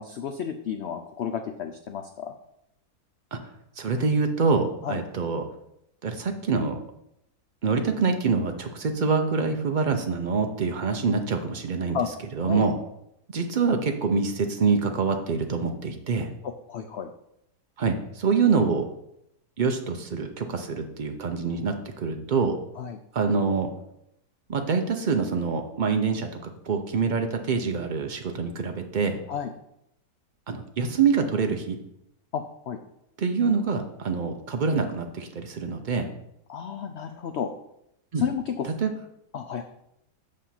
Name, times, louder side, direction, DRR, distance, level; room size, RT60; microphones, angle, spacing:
voice 1, 0.0-2.3 4.8-5.0 11.9-12.1 12.4-12.6 16.4-17.1 22.8-23.0 29.3-29.5 32.3-32.8 36.5-37.5 38.2-38.7 39.3-39.6, left 7 dB, 80° left, 7 dB, 0.5 m, -32 dB
voice 2, 3.8-5.4 6.0-6.8 7.6-12.0 12.3-12.7 13.3-16.3 17.8-18.9 19.6-22.6 23.1-23.7 24.5-29.2 30.5-31.8 33.2-36.1 38.1-38.2 38.8-38.9, right 5 dB, 75° right, 5 dB, 0.4 m, -25 dB
6.8 x 5.2 x 5.7 m, 0.78 s
omnidirectional pair, 1.8 m